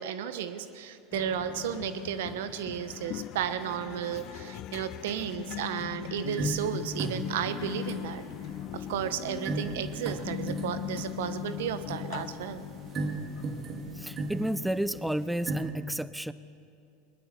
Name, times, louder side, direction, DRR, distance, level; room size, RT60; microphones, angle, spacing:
voice 1, 0.0-8.2 8.7-12.6, right 9 dB, 70° right, 12 dB, 1.3 m, -33 dB
sound 1, 1.1-15.7, left 13 dB, 50° left, 0.6 m, -40 dB
sound 2, 6.4-15.7, right 3 dB, 40° right, 2.5 m, -38 dB
voice 2, 13.9-16.3, right 1 dB, 5° right, 16 dB, 0.5 m, -31 dB
21.5 x 20.5 x 6.9 m, 2.5 s
hypercardioid pair, 85°, 0 cm